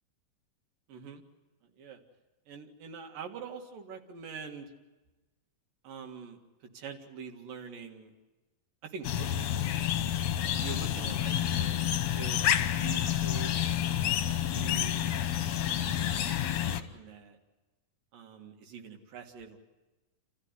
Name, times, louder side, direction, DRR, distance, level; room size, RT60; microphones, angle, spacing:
voice 1, 0.9-1.2 1.8-2.0 2.5-4.7 5.8-6.4 6.7-8.1 8.8-9.8 10.6-13.5 13.9-15.0 15.7-17.4 18.1-19.6, right 6 dB, 85° right, 3 dB, 3.6 m, -45 dB
sound 1, 9.0-16.8, left 10 dB, 65° left, 1.9 m, -29 dB
29.0 x 14.5 x 9.7 m, 1.1 s
omnidirectional pair, 3.8 m